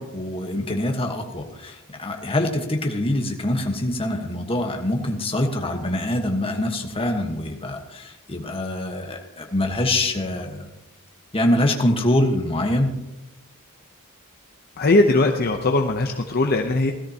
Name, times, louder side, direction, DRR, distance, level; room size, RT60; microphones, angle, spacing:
voice 1, 0.0-10.7 11.3-12.9, left 1 dB, 25° left, 3 dB, 1.3 m, -24 dB
voice 2, 14.8-16.9, left 2 dB, 45° left, 4 dB, 0.7 m, -19 dB
16.5 x 13.5 x 2.9 m, 0.98 s
head